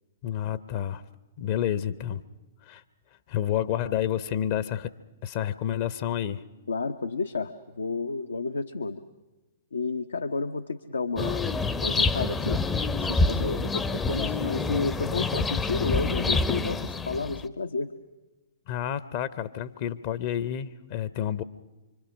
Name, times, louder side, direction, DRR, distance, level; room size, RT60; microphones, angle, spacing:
voice 1, 0.2-1.0 1.4-2.2 2.6-2.8 3.3-4.9 5.2-6.4 18.7-21.4, left 10 dB, 40° left, 14 dB, 0.8 m, -29 dB
voice 2, 6.7-9.0 9.7-11.4 11.8-12.6 13.0-17.9, left 4 dB, 70° left, 8 dB, 0.8 m, -31 dB
sound 1, 11.2-17.5, left 3 dB, 10° left, 0.7 m, -27 dB
25.5 x 25.0 x 6.3 m, 1.1 s
figure-of-eight pair, 110°, 0 cm